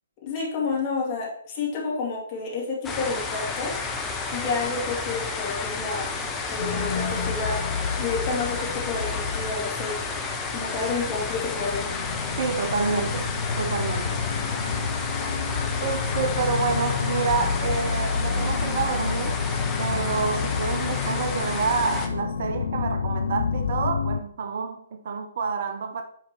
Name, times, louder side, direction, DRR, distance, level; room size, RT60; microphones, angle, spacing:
voice 1, 0.2-3.7 4.3-6.2 6.5-7.6 8.0-10.1 10.5-11.9, left 4 dB, 30° left, 2.5 m, -30 dB
sound 1, 2.8-22.1, left 4 dB, 10° left, 0.8 m, -31 dB
sound 2, 6.6-24.2, left 6 dB, 55° left, 0.5 m, -29 dB
voice 2, 12.4-13.3 13.6-14.2 15.8-19.4 19.8-26.0, right 5 dB, 45° right, 0.7 m, -28 dB
9.2 x 5.0 x 3.0 m
figure-of-eight pair, 125°, 0 cm